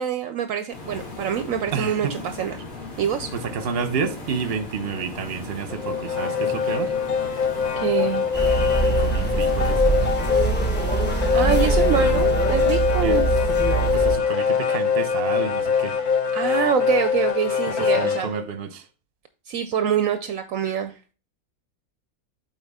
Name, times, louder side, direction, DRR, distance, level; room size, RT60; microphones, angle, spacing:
voice 1, 0.0-2.6 3.0-3.3 7.8-8.3 11.3-13.3 16.3-18.3 19.5-21.0, right 8 dB, 70° right, 0.9 m, -25 dB
sound 1, 0.7-12.3, left 3 dB, 70° left, 2.5 m, -37 dB
voice 2, 1.7-2.2 3.3-6.9 8.8-10.4 13.0-13.3 13.9-15.9 17.9-18.8, right 5 dB, 50° right, 1.0 m, -30 dB
sound 2, 5.7-18.3, left 6 dB, 40° left, 0.7 m, -23 dB
sound 3, 8.3-14.2, right 4 dB, 10° left, 1.0 m, -23 dB
8.1 x 4.3 x 3.5 m
omnidirectional pair, 1.5 m